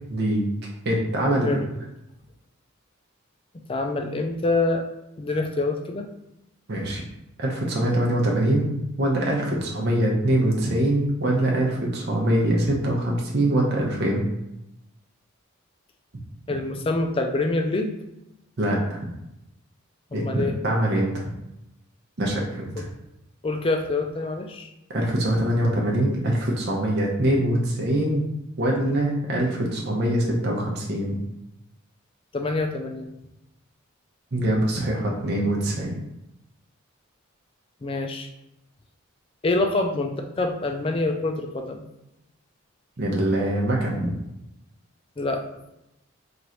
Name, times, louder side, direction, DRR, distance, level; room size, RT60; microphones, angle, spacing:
voice 1, 0.1-0.4 0.8-1.5 6.7-7.0 7.4-14.3 18.6-19.0 20.1-21.3 22.2-22.9 24.9-28.3 28.6-31.2 34.3-36.0 43.0-44.1, right 1 dB, 50° right, -2 dB, 0.8 m, -23 dB
voice 2, 1.3-1.7 3.7-4.8 5.2-6.1 16.5-18.0 20.1-20.5 23.4-24.7 32.3-33.1 37.8-38.3 39.4-41.9 45.2-45.4, left 2 dB, 25° left, 4 dB, 0.4 m, -26 dB
3.0 x 2.5 x 4.3 m, 0.85 s
head